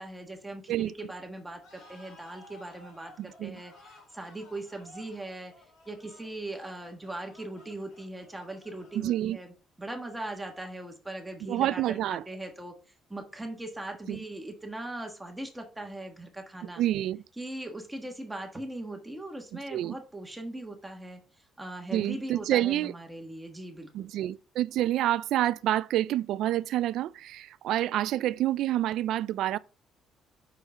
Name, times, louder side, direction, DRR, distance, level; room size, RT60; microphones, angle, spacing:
voice 1, 0.0-5.5 5.9-12.7 13.1-16.8 17.4-21.2 21.6-24.1, right 1 dB, 5° right, 1.3 m, -40 dB
sound 1, 1.6-9.5, left 2 dB, 70° left, 2.7 m, -56 dB
voice 2, 3.2-3.6 8.9-9.4 11.5-12.2 14.1-14.2 16.8-17.2 19.7-20.0 21.9-22.9 23.9-29.6, right 13 dB, 75° right, 0.3 m, -28 dB
5.7 x 4.9 x 6.4 m
cardioid pair, 150°, 0 cm